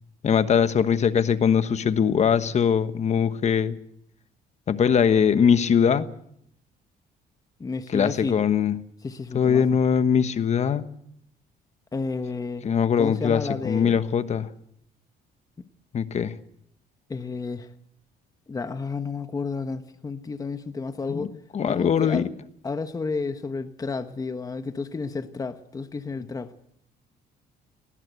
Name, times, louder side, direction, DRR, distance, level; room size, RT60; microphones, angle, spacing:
voice 1, 0.2-3.8 4.7-6.1 7.9-8.7 9.3-10.8 12.6-14.5 15.9-16.3 21.1-21.3 21.5-22.3, left 7 dB, 40° left, 12 dB, 1.3 m, -21 dB
voice 2, 7.6-8.4 9.0-9.6 11.9-12.6 13.0-14.0 15.6-15.7 17.1-17.7 18.5-21.3 21.6-22.3 22.6-26.5, left 4 dB, 20° left, 10 dB, 1.1 m, -31 dB
20.0 x 19.0 x 8.1 m, 0.70 s
cardioid pair, 110°, 17 cm